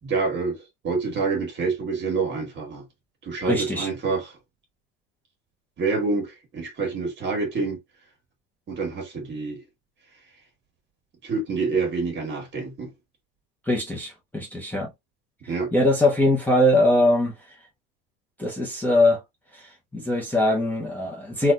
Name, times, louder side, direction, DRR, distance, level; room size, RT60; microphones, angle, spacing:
voice 1, 0.0-2.8 3.2-4.4 5.8-7.8 8.7-9.6 11.2-12.9 15.5-15.7, right 4 dB, 35° right, 1.7 m, -27 dB
voice 2, 3.4-3.9 13.7-14.9 15.7-17.3 18.4-19.2 19.5-21.5, left 1 dB, 5° left, 0.8 m, -22 dB
4.0 x 2.5 x 2.5 m
cardioid pair, 135°, 30 cm